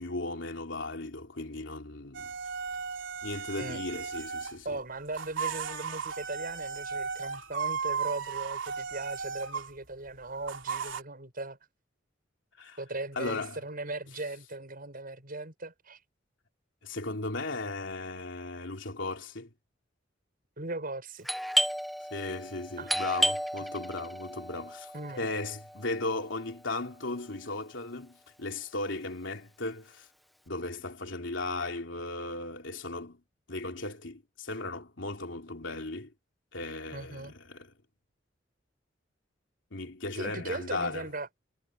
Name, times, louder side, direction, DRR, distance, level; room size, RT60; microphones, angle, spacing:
voice 1, 0.0-2.3 3.2-4.8 12.6-12.8 13.1-13.6 16.8-19.5 22.1-24.9 25.2-30.1 30.5-33.2 33.5-36.1 36.5-37.7 39.7-41.1, left 2 dB, 80° left, 3.2 m, -36 dB
sound 1, 2.1-4.6 5.0-9.7 10.5-11.0, right 6 dB, 90° right, 3.3 m, -35 dB
voice 2, 4.6-11.6 12.8-16.0 20.6-21.3 22.8-22.9 24.9-25.3 36.9-37.3 40.2-41.3, right 2 dB, 50° right, 7.9 m, -38 dB
Doorbell, 21.3-26.7, equal, ahead, 1.3 m, -33 dB
head